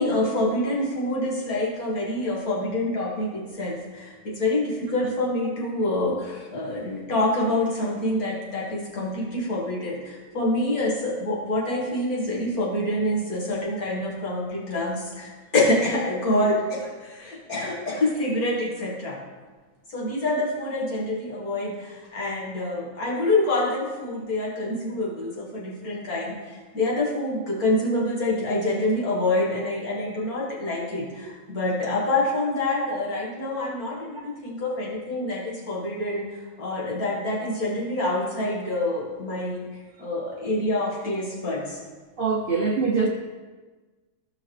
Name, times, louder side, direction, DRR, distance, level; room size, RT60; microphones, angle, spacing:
voice 1, 0.0-19.2 19.9-39.7 40.0-41.8, left 1 dB, 85° left, -4 dB, 2.1 m, -26 dB
voice 2, 42.2-43.1, right 4 dB, 45° right, -1 dB, 0.8 m, -24 dB
15.0 x 5.8 x 3.2 m, 1.3 s
omnidirectional pair, 1.5 m